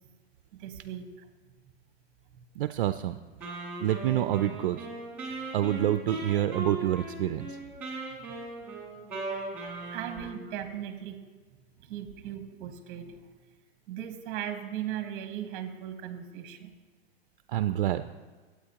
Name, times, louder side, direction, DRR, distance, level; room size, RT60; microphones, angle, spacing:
voice 1, 0.5-1.3 9.9-11.2 11.8-13.2 13.9-16.7, right 10 dB, 25° right, 8 dB, 1.0 m, -38 dB
voice 2, 2.6-3.2 3.8-4.9 5.5-7.6 9.8-10.0 17.5-18.0, right 12 dB, 55° right, 10 dB, 0.4 m, -27 dB
Wind instrument woodwind instrument, 3.4-10.5, right 2 dB, 5° right, 2.3 m, -38 dB
18.5 x 8.6 x 2.9 m, 1.4 s
hypercardioid pair, 165°, 32 cm